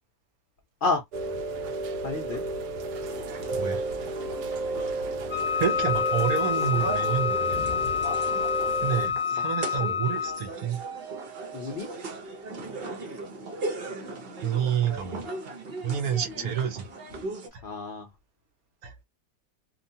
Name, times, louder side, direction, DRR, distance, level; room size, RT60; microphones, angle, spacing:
Rain, 1.1-9.1, right 2 dB, 90° right, 1.2 m, -32 dB
voice 1, 2.0-2.4 6.7-6.8 7.5-8.0 9.7-10.0 11.5-11.9 16.4-16.5 17.6-18.1, left 3 dB, 65° left, 0.5 m, -31 dB
sound 1, 3.1-17.5, right 2 dB, 50° right, 0.7 m, -38 dB
Wind instrument woodwind instrument, 5.3-10.5, left 7 dB, 10° right, 0.3 m, -28 dB
voice 2, 5.6-7.6 8.8-10.8 14.4-15.2 15.8-16.9 17.5-17.6 18.8-18.9, right 8 dB, 70° right, 1.0 m, -28 dB
2.9 x 2.2 x 2.7 m
omnidirectional pair, 1.7 m